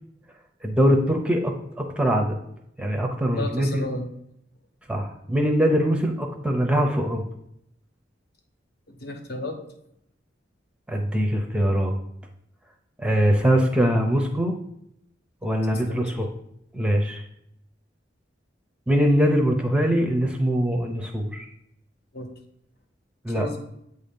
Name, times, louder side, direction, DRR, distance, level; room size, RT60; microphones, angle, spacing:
voice 1, 0.6-2.4 2.8-3.9 4.9-7.3 10.9-12.0 13.0-14.5 15.4-16.3 16.7-17.2 18.9-21.5 23.2-23.5, equal, 5° right, 3 dB, 0.6 m, -22 dB
voice 2, 3.4-4.1 8.9-9.6 15.7-16.1 22.1-22.3 23.3-23.6, left 1 dB, 60° left, 4 dB, 0.9 m, -33 dB
8.1 x 2.8 x 5.2 m, 0.76 s
head